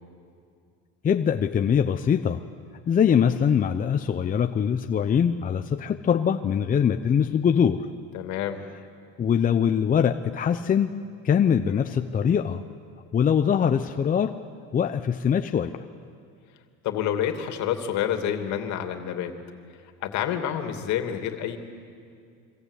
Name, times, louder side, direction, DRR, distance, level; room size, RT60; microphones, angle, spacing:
voice 1, 1.0-2.4 2.9-7.9 9.2-10.9 11.2-12.6 13.1-14.4 14.7-15.8, left 8 dB, 25° left, 7 dB, 0.8 m, -23 dB
voice 2, 8.1-8.6 11.7-11.8 16.8-19.3 20.0-21.6, left 10 dB, 60° left, 6 dB, 2.8 m, -28 dB
26.0 x 25.0 x 8.4 m, 2.3 s
supercardioid pair, 115°, 32 cm